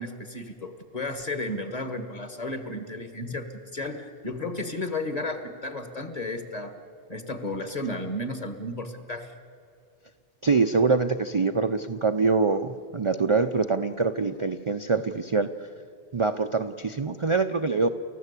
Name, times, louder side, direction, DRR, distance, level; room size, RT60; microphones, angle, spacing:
voice 1, 0.0-6.7 7.1-9.3, left 2 dB, 35° left, 8 dB, 1.6 m, -33 dB
voice 2, 10.4-15.5 16.1-17.9, right 4 dB, 35° right, 7 dB, 0.5 m, -24 dB
29.5 x 15.0 x 8.3 m, 2.4 s
omnidirectional pair, 1.1 m